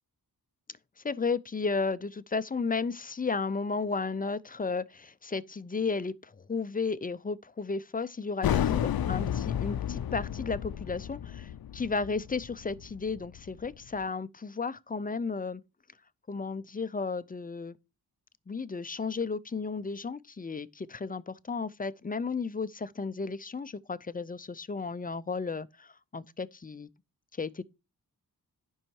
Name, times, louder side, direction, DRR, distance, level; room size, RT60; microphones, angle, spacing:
voice 1, 1.0-15.6 16.3-17.8 18.5-26.9 27.4-27.6, left 4 dB, 25° left, 0.5 m, -34 dB
sound 1, 8.4-13.7, left 10 dB, 75° left, 0.5 m, -32 dB
10.5 x 5.5 x 4.6 m
wide cardioid pair, 110°, 37 cm